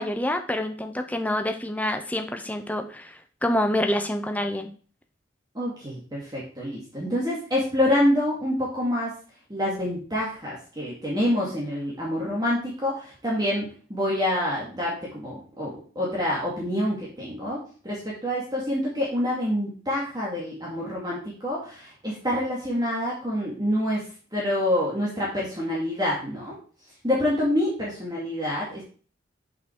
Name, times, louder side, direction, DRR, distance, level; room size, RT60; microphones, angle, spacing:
voice 1, 0.0-4.7, left 1 dB, 10° left, 6 dB, 0.7 m, -27 dB
voice 2, 5.5-9.1 9.5-17.6 17.8-24.0 24.3-26.6 27.0-28.8, left 1 dB, 20° right, -5 dB, 2.2 m, -27 dB
7.4 x 5.7 x 4.6 m, 0.41 s
head